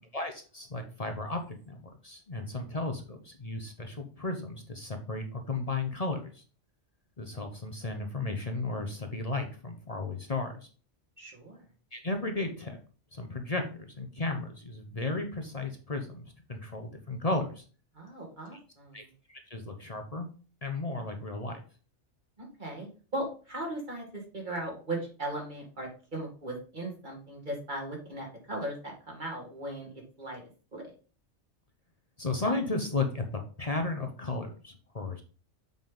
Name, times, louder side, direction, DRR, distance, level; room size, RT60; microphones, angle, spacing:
voice 1, 0.1-1.4 1.7-6.4 7.2-10.5 11.9-12.8 13.1-16.2 16.5-17.6 18.9-19.0 19.3-20.3 20.6-21.6 32.2-33.2 33.6-35.2, left 3 dB, 35° left, 4 dB, 0.9 m, -34 dB
voice 2, 11.2-11.6 17.9-19.1 22.4-30.4 30.7-30.9, right 1 dB, 40° right, -1 dB, 2.4 m, -38 dB
7.3 x 5.5 x 3.8 m, 0.38 s
omnidirectional pair, 1.3 m